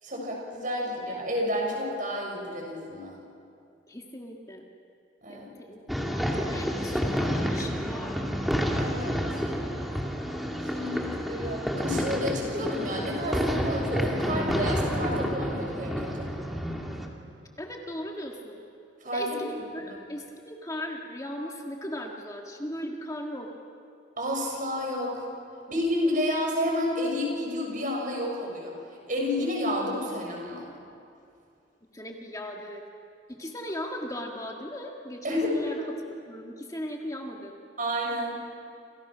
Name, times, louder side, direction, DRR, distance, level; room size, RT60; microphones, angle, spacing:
voice 1, 0.0-3.2 5.2-5.5 8.8-9.2 10.7-16.3 19.0-19.4 24.2-25.3 25.7-28.7 29.1-30.7 35.2-35.5 37.8-38.4, left 1 dB, 45° right, 0 dB, 6.9 m, -30 dB
voice 2, 3.9-4.7 5.3-5.4 5.7-8.2 17.6-18.6 19.1-23.5 31.9-32.8 33.3-35.8 36.3-37.5, left 1 dB, 20° left, 1 dB, 1.8 m, -38 dB
sound 1, 5.9-17.1, equal, ahead, 2.3 m, -29 dB
29.0 x 28.0 x 6.2 m, 2.5 s
head